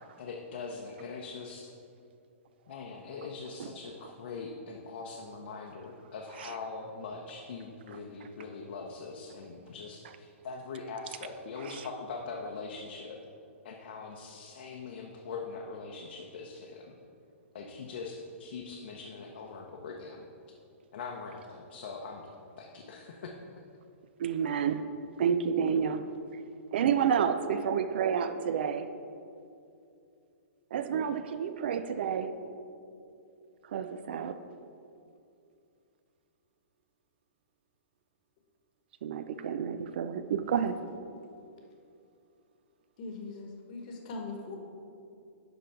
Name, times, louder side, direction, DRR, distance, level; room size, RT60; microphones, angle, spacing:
voice 1, 0.2-1.7 2.7-13.2 13.6-16.9 17.5-20.3 20.9-22.3 22.6-23.3, left 4 dB, 55° left, 0 dB, 0.8 m, -42 dB
voice 2, 24.2-24.8 25.2-26.0 26.7-28.9 30.7-32.3 33.7-34.4 39.0-40.8, right 7 dB, 50° right, 11 dB, 0.5 m, -29 dB
voice 3, 43.0-44.6, left 3 dB, 35° left, 2 dB, 1.2 m, -41 dB
10.5 x 3.8 x 5.7 m, 2.6 s
hypercardioid pair, 170°, 7 cm